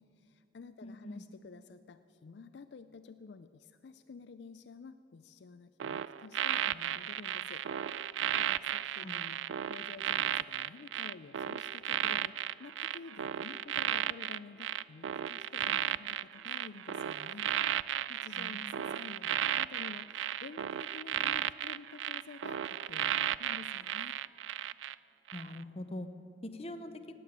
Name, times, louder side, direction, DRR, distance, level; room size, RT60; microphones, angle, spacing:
voice 1, 0.0-7.6 8.3-9.4 9.7-17.5 18.1-24.2, left 4 dB, 65° left, 11 dB, 0.4 m, -51 dB
voice 2, 0.8-1.2 9.0-9.2 18.4-18.7 25.3-26.1 26.5-26.9, left 1 dB, 35° left, 8 dB, 0.7 m, -43 dB
sound 1, 5.8-24.9 25.3-25.6, right 11 dB, 90° right, 0.3 m, -34 dB
18.0 x 7.7 x 8.7 m, 2.8 s
head